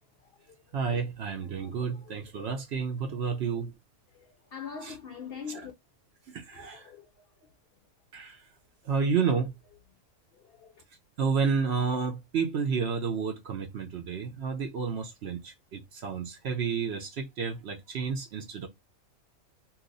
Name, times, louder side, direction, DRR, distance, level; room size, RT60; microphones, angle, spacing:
voice 1, 0.2-0.8 1.4-2.6 3.2-3.4 4.1-5.7 6.5-7.5 10.3-10.8, left 7 dB, 65° left, 0.6 m, -45 dB
voice 2, 0.7-3.7 4.8-4.9 5.5-5.7 6.3-6.9 8.1-8.4 8.8-9.5 11.2-18.7, right 5 dB, 60° right, 0.8 m, -30 dB
2.8 x 2.4 x 3.9 m
omnidirectional pair, 1.5 m